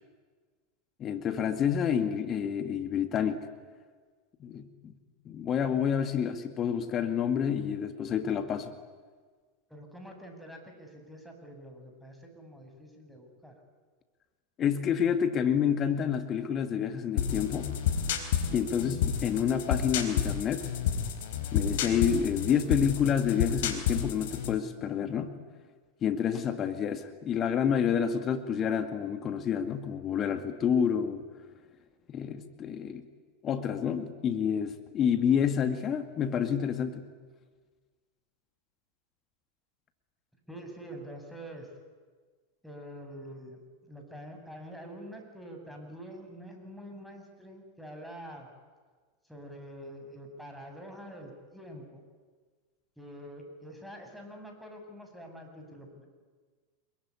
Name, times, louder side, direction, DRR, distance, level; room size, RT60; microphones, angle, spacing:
voice 1, 1.0-3.4 4.4-4.9 5.3-8.7 14.6-17.7 18.5-20.7 21.5-25.3 26.0-31.2 32.1-33.0 33.4-37.1, left 8 dB, 35° left, 9 dB, 2.2 m, -28 dB
voice 2, 9.7-13.6 26.5-26.6 40.5-41.7 42.6-48.5 49.2-52.0 53.0-56.1, equal, ahead, 3 dB, 7.5 m, -46 dB
sound 1, 17.2-24.6, left 8 dB, 65° left, 4.2 m, -30 dB
26.5 x 23.0 x 9.9 m, 1.5 s
hypercardioid pair, 90°, 0 cm